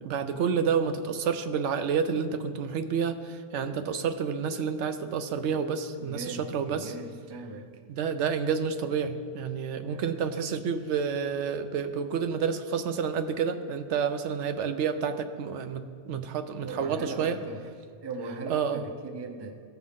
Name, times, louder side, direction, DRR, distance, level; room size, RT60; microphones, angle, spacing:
voice 1, 0.0-6.9 7.9-17.4 18.5-18.8, right 6 dB, 75° right, 9 dB, 0.9 m, -29 dB
voice 2, 6.0-7.8 9.9-10.2 16.6-17.6 18.0-19.6, right 3 dB, 30° right, 5 dB, 0.5 m, -39 dB
15.5 x 5.9 x 3.6 m, 2.3 s
omnidirectional pair, 1.2 m